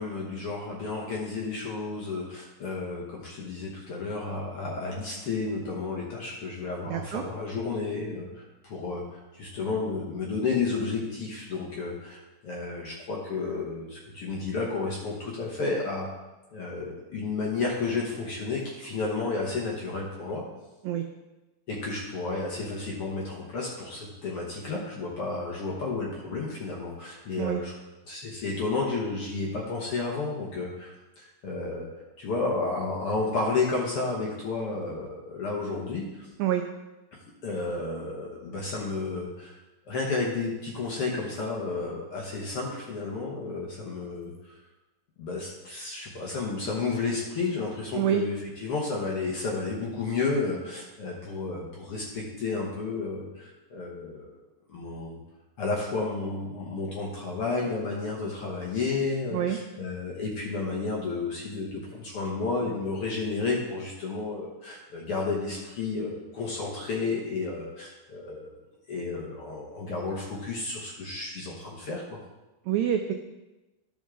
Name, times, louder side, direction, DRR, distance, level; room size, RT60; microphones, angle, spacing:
voice 1, 0.0-16.1 16.5-20.4 21.7-27.7 28.1-31.9 32.2-36.3 37.4-39.5 39.9-44.5 45.2-54.3 54.7-55.2 55.6-68.5 68.9-72.2, left 3 dB, 60° left, -3 dB, 1.6 m, -32 dB
voice 2, 6.9-7.2 20.8-21.0 27.4-27.6 36.4-36.6 47.9-48.2 59.3-59.6 72.7-73.1, right 10 dB, 85° right, 6 dB, 1.6 m, -26 dB
12.0 x 5.4 x 3.7 m, 1.1 s
omnidirectional pair, 3.8 m